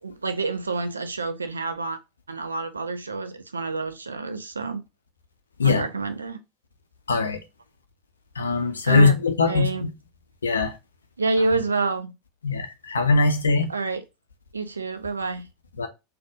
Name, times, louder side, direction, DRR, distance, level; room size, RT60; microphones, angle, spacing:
voice 1, 0.0-2.0 2.3-4.8 5.6-6.4 8.8-9.1 9.5-9.9 11.2-12.1 13.7-14.0 14.5-15.5, right 3 dB, 85° right, 0.6 m, -28 dB
voice 2, 7.1-7.4 8.4-9.9 10.4-10.8 12.4-13.7 15.8-15.9, left 4 dB, 80° left, 0.7 m, -21 dB
4.0 x 2.6 x 4.8 m
figure-of-eight pair, 80°, 0 cm